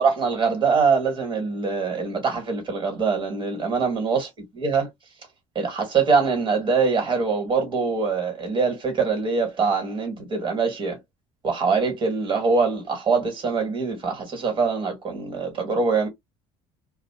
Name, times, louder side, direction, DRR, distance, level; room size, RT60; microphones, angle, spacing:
voice 1, 0.0-4.3 4.6-4.9 5.5-11.0 11.4-16.1, right 5 dB, 35° right, 1.3 m, -23 dB
2.4 x 2.2 x 3.4 m
supercardioid pair, 90°, 13 cm